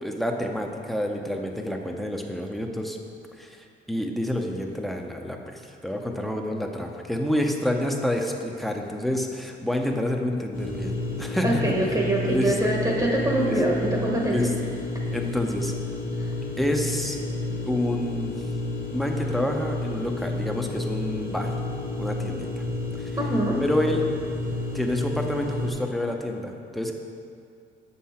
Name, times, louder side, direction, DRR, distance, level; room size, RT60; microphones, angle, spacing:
voice 1, 0.0-3.0 3.4-10.9 11.2-11.6 12.2-12.7 13.4-13.6 14.3-14.5 15.1-15.7 16.6-17.2 17.7-18.4 18.9-21.5 22.0-22.5 23.0-23.2 23.6-24.0 24.7-26.9, left 1 dB, ahead, 2 dB, 0.7 m, -28 dB
sound 1, 10.5-25.7, left 2 dB, 85° left, 1.3 m, -31 dB
voice 2, 11.4-14.4 23.2-23.6, right 1 dB, 20° right, -2 dB, 1.0 m, -24 dB
7.2 x 5.7 x 4.3 m, 2.4 s
cardioid pair, 90°, 20 cm